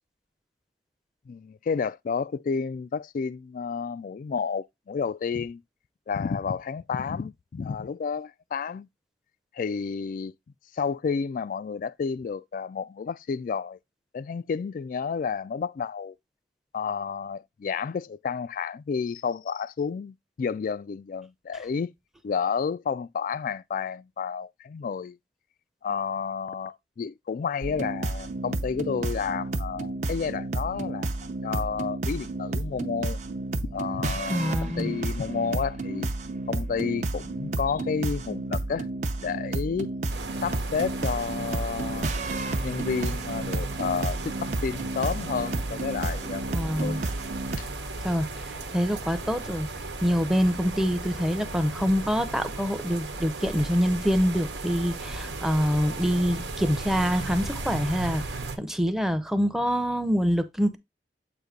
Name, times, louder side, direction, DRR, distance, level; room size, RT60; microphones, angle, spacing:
voice 1, 1.3-5.6 6.1-8.9 9.5-10.3 10.7-13.8 14.1-16.1 16.7-21.9 22.2-25.2 25.8-31.1 31.4-33.2 33.7-36.1 36.5-38.9 39.2-39.9 40.4-42.1 42.6-47.0 47.6-47.7, left 6 dB, 50° left, 0.3 m, -31 dB
sound 1, 27.6-47.6, right 2 dB, 40° right, 0.7 m, -31 dB
voice 2, 34.3-35.0 46.5-47.0 48.0-48.3 48.7-49.7 50.0-58.2 58.6-60.8, equal, ahead, 0.7 m, -25 dB
sound 2, 40.1-58.6, right 3 dB, 80° right, 1.1 m, -36 dB
8.0 x 2.7 x 5.1 m
head